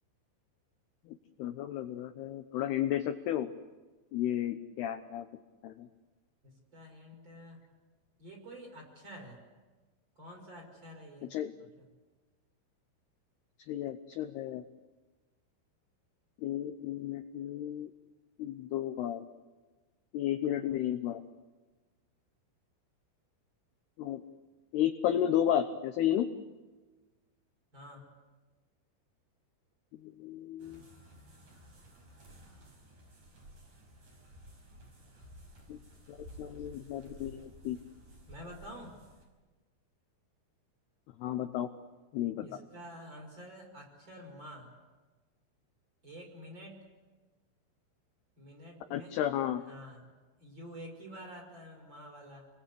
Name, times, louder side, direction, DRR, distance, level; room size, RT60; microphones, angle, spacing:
voice 1, 1.4-3.5 4.1-5.3 5.6-5.9 11.3-11.5 13.7-14.6 16.4-17.9 18.4-19.2 20.1-21.2 24.0-24.2 24.7-26.3 30.0-30.8 35.7-35.8 36.1-37.8 41.2-41.7 42.1-42.5 48.9-49.6, left 11 dB, 80° left, 8 dB, 2.3 m, -33 dB
voice 2, 6.4-7.6 8.2-9.4 10.2-11.3 11.6-11.9 27.7-28.1 38.3-39.0 42.4-44.7 46.0-46.8 48.4-49.1 49.7-50.1 50.4-52.5, equal, 20° right, 0 dB, 5.9 m, -49 dB
sound 1, 30.6-39.3, equal, 40° right, 6.4 m, -54 dB
29.5 x 21.0 x 8.5 m, 1.3 s
omnidirectional pair, 5.9 m